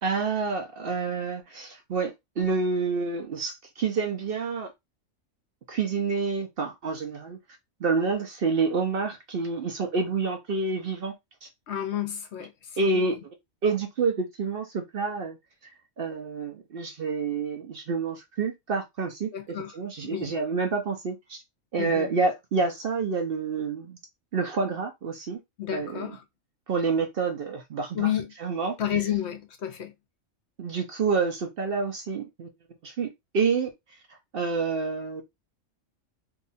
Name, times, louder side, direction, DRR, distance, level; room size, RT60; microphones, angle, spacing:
voice 1, 0.0-4.7 5.7-7.4 7.8-11.1 11.4-11.5 12.8-13.2 13.6-15.4 16.0-21.4 21.7-24.0 24.3-25.4 25.7-26.1 26.7-28.1 28.4-28.8 30.6-32.5 32.8-33.1 33.3-33.7 34.3-35.2, right 4 dB, 55° right, 0.7 m, -28 dB
voice 2, 11.7-13.2 19.3-19.7 20.0-20.3 21.8-22.1 25.6-26.2 27.9-28.3 28.8-29.9, left 10 dB, 65° left, 0.8 m, -31 dB
2.7 x 2.3 x 3.9 m
omnidirectional pair, 1.4 m